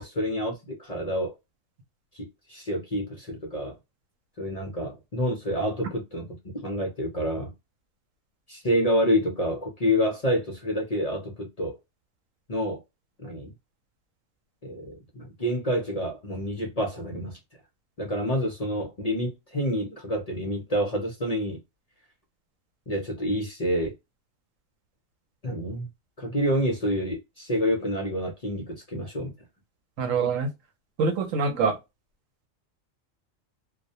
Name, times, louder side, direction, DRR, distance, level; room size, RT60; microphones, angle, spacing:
voice 1, 0.0-1.3 2.1-3.7 4.4-6.3 6.5-7.5 8.5-11.7 12.5-12.8 13.2-13.5 14.6-17.4 18.0-21.6 22.9-23.9 25.4-25.9 26.2-29.3, equal, 45° left, 0.5 m, -28 dB
voice 2, 30.0-30.5 31.0-31.8, right 4 dB, 85° right, 1.0 m, -24 dB
2.4 x 2.1 x 2.6 m
omnidirectional pair, 1.3 m